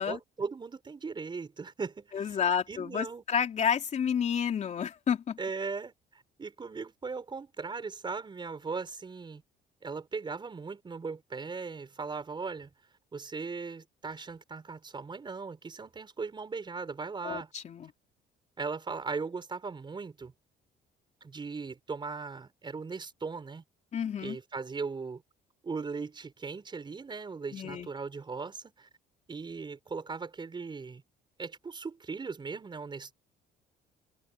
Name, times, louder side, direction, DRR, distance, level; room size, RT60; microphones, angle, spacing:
voice 1, 0.0-2.4 2.7-3.2 5.4-9.4 9.8-12.7 13.1-17.5 18.6-20.3 21.2-23.6 24.2-25.2 25.6-28.9 29.3-31.0 31.4-33.1, right 4 dB, 25° right, 6.6 m, -38 dB
voice 2, 2.1-5.4 17.2-17.9 23.9-24.4 27.5-27.9, left 7 dB, 45° left, 3.5 m, -30 dB
cardioid pair, 110°, 17 cm